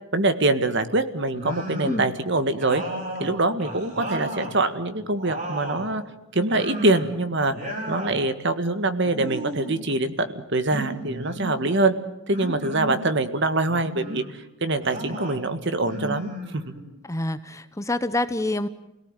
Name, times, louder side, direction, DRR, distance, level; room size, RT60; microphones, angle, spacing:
voice 1, 0.1-2.8 3.2-6.0 6.3-7.5 7.9-11.9 12.3-14.2 14.6-16.7, right 2 dB, 55° right, 10 dB, 1.8 m, -24 dB
sound 1, 1.3-2.1 2.6-4.6 5.0-5.9 6.5-7.2 7.5-8.2 9.0-9.8 10.6-11.5 12.3-13.0 13.7-14.3 14.8-15.4 15.8-16.9, right 1 dB, 35° right, 6.0 m, -34 dB
voice 2, 17.1-18.7, left 2 dB, 15° left, 11 dB, 0.9 m, -27 dB
29.5 x 18.0 x 9.1 m, 0.93 s
head